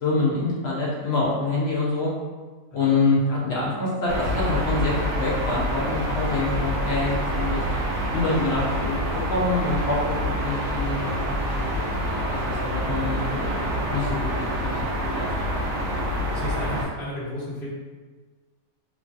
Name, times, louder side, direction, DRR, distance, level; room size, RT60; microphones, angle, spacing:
voice 1, 0.0-2.1 2.7-7.6 7.9-10.0 10.4-11.7 12.3-14.3 14.6-14.7 15.0-15.3, left 3 dB, 75° left, -5 dB, 0.6 m, -26 dB
voice 2, 2.7-3.4 12.7-13.1 16.3-17.7, equal, 35° left, -10 dB, 1.2 m, -35 dB
sound 1, 4.1-16.8, equal, 70° right, 0.8 m, -27 dB
3.0 x 2.2 x 2.5 m, 1.3 s
omnidirectional pair, 1.7 m